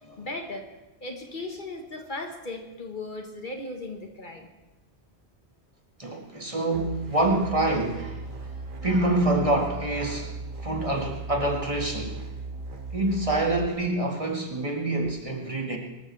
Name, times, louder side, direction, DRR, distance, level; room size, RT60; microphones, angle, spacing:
voice 1, 0.2-0.7 1.0-4.5 15.0-15.1, left 2 dB, 50° left, 3 dB, 1.6 m, -37 dB
voice 2, 6.0-12.2 12.9-15.8, right 2 dB, 30° right, 0 dB, 1.9 m, -27 dB
sound 1, 6.7-13.7, right 3 dB, 55° right, 1.4 m, -37 dB
23.5 x 14.0 x 3.4 m, 1.0 s
omnidirectional pair, 1.1 m